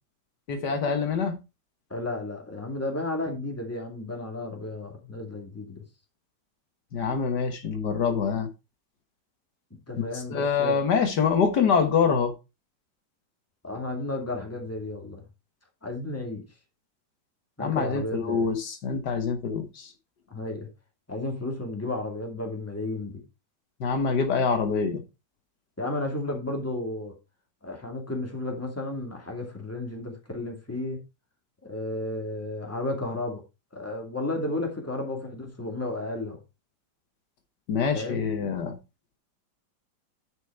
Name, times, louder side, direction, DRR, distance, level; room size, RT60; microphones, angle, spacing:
voice 1, 0.5-1.4 6.9-8.5 10.0-12.3 17.6-19.9 23.8-25.0 37.7-38.8, left 6 dB, 70° left, 1.8 m, -25 dB
voice 2, 1.9-5.8 9.9-10.8 13.6-15.2 15.8-16.4 17.6-18.5 20.3-20.7 21.1-23.2 25.8-27.1 27.6-31.0 31.6-33.4 33.7-36.4 37.9-38.3, left 2 dB, 10° left, 2.2 m, -33 dB
9.9 x 5.3 x 4.5 m
omnidirectional pair, 1.9 m